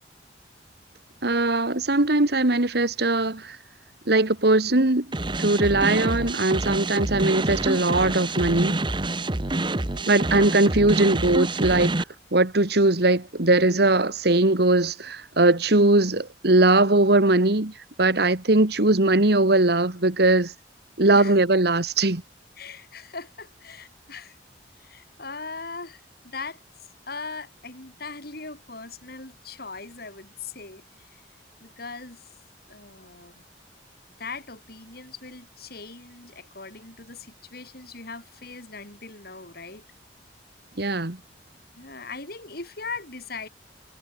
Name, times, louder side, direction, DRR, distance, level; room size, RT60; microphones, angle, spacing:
voice 1, 1.2-3.6 4.1-5.1 5.4-8.8 10.1-11.9 12.3-17.7 18.0-20.5 21.0-22.2 40.8-41.2, right 2 dB, 65° right, 1.9 m, -20 dB
sound 1, 5.1-12.0, right 2 dB, 25° right, 1.2 m, -27 dB
voice 2, 9.4-10.2 21.1-21.4 22.6-24.4 24.8-26.6 27.1-31.2 31.6-32.3 32.7-33.4 34.2-39.8 41.8-43.5, left 4 dB, 60° left, 7.9 m, -40 dB
head